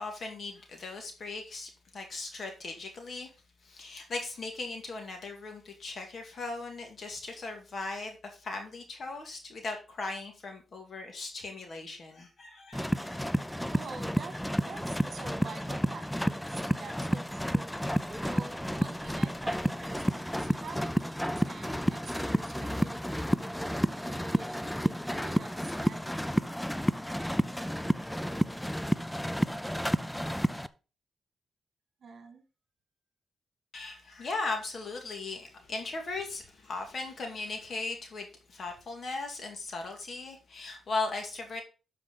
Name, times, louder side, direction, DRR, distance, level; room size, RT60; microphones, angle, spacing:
voice 1, 0.0-3.3 3.6-13.4 33.7-41.6, left 3 dB, 55° left, 2.2 m, -38 dB
sound 1, 12.7-30.7, equal, 5° left, 0.5 m, -31 dB
voice 2, 13.7-14.4 14.6-17.7 18.1-26.0 32.0-32.4, right 4 dB, 55° right, 1.8 m, -47 dB
12.0 x 5.0 x 3.8 m
cardioid pair, 95°, 0 cm